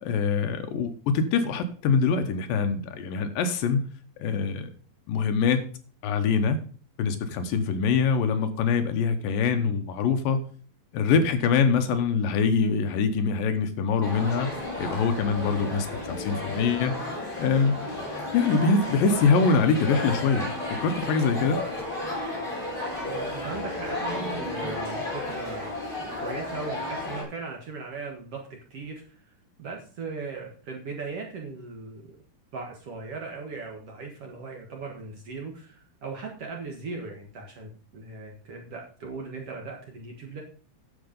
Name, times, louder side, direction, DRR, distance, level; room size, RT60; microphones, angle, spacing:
voice 1, 0.0-3.9 4.2-4.7 5.1-5.6 6.0-6.6 7.0-10.4 10.9-14.5 14.8-16.9 17.4-17.8 18.3-20.5 20.8-21.6, left 5 dB, 75° left, 8 dB, 2.5 m, -24 dB
sound 1, 14.0-27.2, left 2 dB, 15° left, 3.8 m, -33 dB
voice 2, 23.0-25.8 26.2-32.1 32.5-40.4, right 4 dB, 55° right, 1 dB, 1.9 m, -38 dB
10.5 x 7.1 x 5.2 m, 0.42 s
omnidirectional pair, 4.3 m